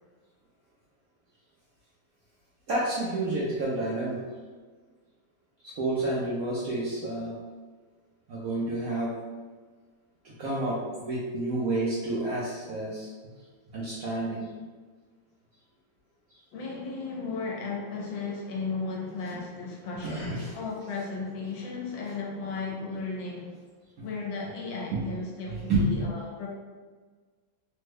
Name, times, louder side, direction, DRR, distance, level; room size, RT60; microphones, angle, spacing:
voice 1, 2.7-4.2 5.6-7.3 8.3-9.1 10.2-13.1 13.7-14.5 20.0-20.6 24.0-24.1 24.9-25.0 25.5-26.1, right 2 dB, 70° right, -6 dB, 0.9 m, -29 dB
voice 2, 16.5-23.5 24.0-26.5, left 4 dB, 80° left, -2 dB, 1.3 m, -35 dB
3.4 x 2.1 x 3.3 m, 1.4 s
omnidirectional pair, 2.0 m